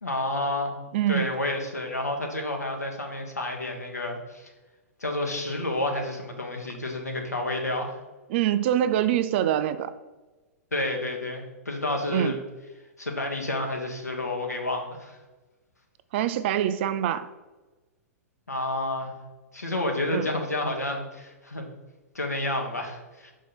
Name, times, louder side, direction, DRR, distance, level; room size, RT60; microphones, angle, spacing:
voice 1, 0.0-0.7 1.1-4.5 5.0-8.0 10.7-12.4 13.0-15.2 18.5-19.1 19.5-21.7 22.1-23.3, left 1 dB, 85° left, 2 dB, 1.3 m, -30 dB
voice 2, 0.9-1.3 8.3-9.9 12.1-12.4 16.1-17.3 20.1-20.3, right 11 dB, 45° right, 12 dB, 0.5 m, -24 dB
6.3 x 4.6 x 5.9 m, 1.2 s
figure-of-eight pair, 105°, 8 cm